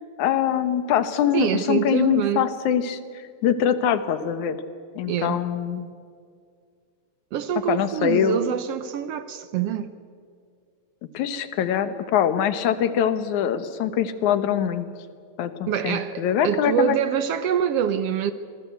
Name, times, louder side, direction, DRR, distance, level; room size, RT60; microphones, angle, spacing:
voice 1, 0.2-3.0 3.4-4.6 5.0-5.9 7.7-8.4 11.1-14.9 15.4-17.0, left 9 dB, 85° left, 2.6 m, -23 dB
voice 2, 1.3-2.5 5.1-5.4 7.3-9.9 15.7-18.3, right 9 dB, 70° right, 1.6 m, -25 dB
25.5 x 19.5 x 8.1 m
omnidirectional pair, 3.3 m